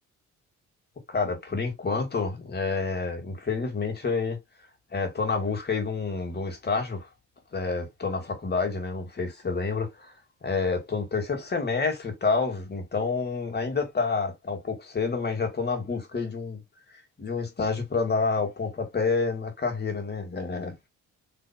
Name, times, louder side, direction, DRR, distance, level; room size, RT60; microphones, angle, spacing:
voice 1, 1.1-4.4 4.9-7.1 7.5-10.1 10.4-16.6 17.2-20.7, left 4 dB, 35° left, 2.0 m, -28 dB
4.3 x 3.3 x 2.2 m
cardioid pair, 90°, 30 cm